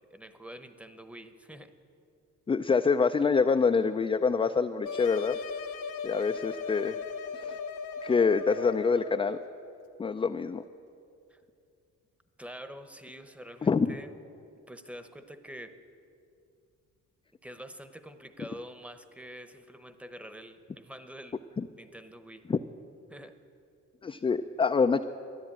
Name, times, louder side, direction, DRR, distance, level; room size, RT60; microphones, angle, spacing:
voice 1, 0.0-1.7 11.3-11.4 12.4-14.1 14.7-15.8 17.4-21.4 21.8-22.4 23.1-23.3, equal, 5° right, 10 dB, 0.9 m, -46 dB
voice 2, 2.5-5.4 6.0-7.0 7.3-7.6 8.0-9.4 10.0-10.6 13.6-14.0 21.6-21.7 22.5-22.6 24.0-25.0, left 5 dB, 20° left, 7 dB, 0.4 m, -26 dB
sound 1, 4.8-9.3, left 5 dB, 90° left, 1.1 m, -38 dB
13.5 x 10.5 x 8.8 m, 2.5 s
cardioid pair, 90°, 30 cm